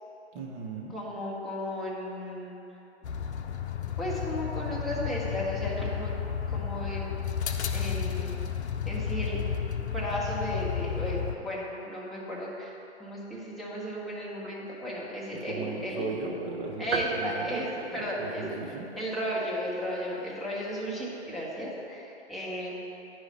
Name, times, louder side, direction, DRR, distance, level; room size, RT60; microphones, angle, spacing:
voice 1, 0.3-0.9 15.4-17.6 17.9-18.9, right 3 dB, 30° right, -1 dB, 1.1 m, -36 dB
voice 2, 0.9-2.6 4.0-6.1 6.5-7.1 7.7-8.4 8.8-9.4 9.9-16.1 16.8-18.4 19.0-22.8, equal, ahead, -8 dB, 1.2 m, -34 dB
sound 1, 3.0-11.4, left 7 dB, 70° left, 0.6 m, -32 dB
sound 2, 16.9-18.7, right 4 dB, 60° right, 0.7 m, -35 dB
9.7 x 4.9 x 4.3 m, 3.0 s
figure-of-eight pair, 125°, 34 cm